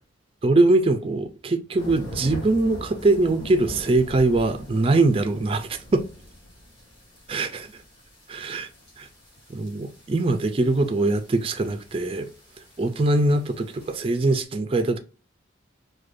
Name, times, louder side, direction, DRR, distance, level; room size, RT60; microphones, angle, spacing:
voice 1, 0.4-6.1 7.3-7.7 8.3-8.7 9.0-9.1 9.5-12.3 12.8-15.0, right 2 dB, 30° right, 0.3 m, -22 dB
sound 1, 1.8-14.4, left 1 dB, 25° left, 1.4 m, -43 dB
4.8 x 2.2 x 2.5 m
head